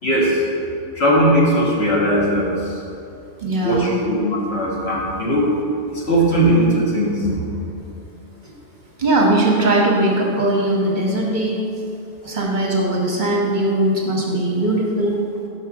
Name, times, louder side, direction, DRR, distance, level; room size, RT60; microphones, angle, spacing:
voice 1, 0.0-0.4 0.9-2.8 3.6-5.5 5.9-7.4 12.2-12.4, equal, 65° left, -5 dB, 1.7 m, -19 dB
voice 2, 3.4-3.9 8.4-8.5 9.0-11.6 12.2-15.2, right 1 dB, 45° right, -2 dB, 0.9 m, -19 dB
5.7 x 4.7 x 6.0 m, 2.6 s
omnidirectional pair, 1.2 m